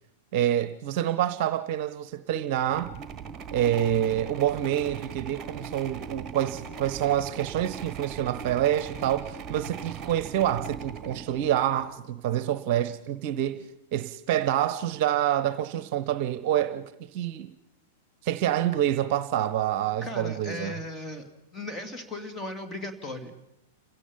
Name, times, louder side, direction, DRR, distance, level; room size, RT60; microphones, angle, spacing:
voice 1, 0.3-2.9 3.5-17.5 18.2-20.7, right 11 dB, 45° right, 0.9 m, -27 dB
sound 1, 2.6-12.0, right 6 dB, 25° right, 1.5 m, -40 dB
voice 2, 20.0-21.2 21.5-23.3, left 2 dB, 15° left, 2.9 m, -36 dB
30.0 x 16.5 x 5.5 m
figure-of-eight pair, 95°, 0 cm